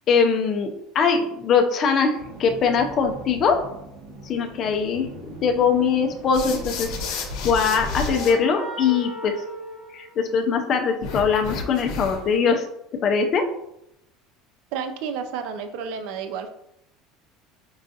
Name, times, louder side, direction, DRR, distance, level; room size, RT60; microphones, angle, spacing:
voice 1, 0.1-3.6 4.2-9.4 9.9-12.7 13.0-13.5, left 6 dB, 30° left, 5 dB, 0.4 m, -22 dB
sound 1, 2.1-7.1, right 2 dB, 80° right, 1.0 m, -41 dB
sound 2, 6.3-8.3 11.0-12.3, left 3 dB, 55° left, 0.8 m, -31 dB
sound 3, 6.9-10.8, right 2 dB, 15° right, 1.0 m, -38 dB
voice 2, 14.7-16.5, right 6 dB, 55° right, 7 dB, 0.3 m, -31 dB
5.3 x 2.4 x 2.6 m, 0.80 s
cardioid pair, 175°, 0 cm